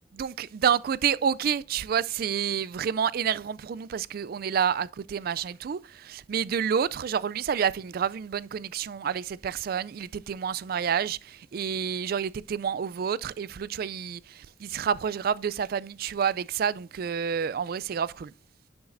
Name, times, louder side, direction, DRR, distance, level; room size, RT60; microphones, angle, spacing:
voice 1, 0.1-18.3, right 7 dB, 55° right, 0.3 m, -29 dB
10.5 x 7.2 x 2.5 m
head